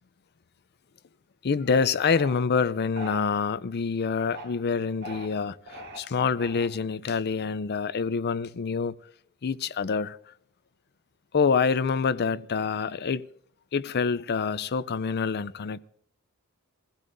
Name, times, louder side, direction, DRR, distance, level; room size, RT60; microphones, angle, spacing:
voice 1, 1.4-5.6 6.0-9.0 9.4-10.2 11.3-13.3 13.7-15.8, left 5 dB, 50° left, 0.5 m, -26 dB
sound 1, 2.0-2.3 2.9-3.2 4.1-4.5 5.0-5.3 5.7-6.0 6.4-6.9, equal, 55° right, 3.8 m, -40 dB
24.5 x 16.0 x 2.7 m
head